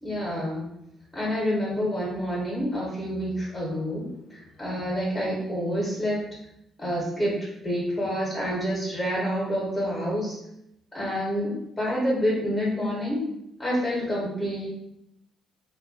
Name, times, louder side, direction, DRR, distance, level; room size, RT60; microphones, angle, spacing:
voice 1, 0.0-0.6 1.1-6.2 6.8-10.4 10.9-13.2 13.6-14.7, equal, 20° left, -6 dB, 0.9 m, -28 dB
2.1 x 2.1 x 2.7 m, 0.80 s
figure-of-eight pair, 45°, 0 cm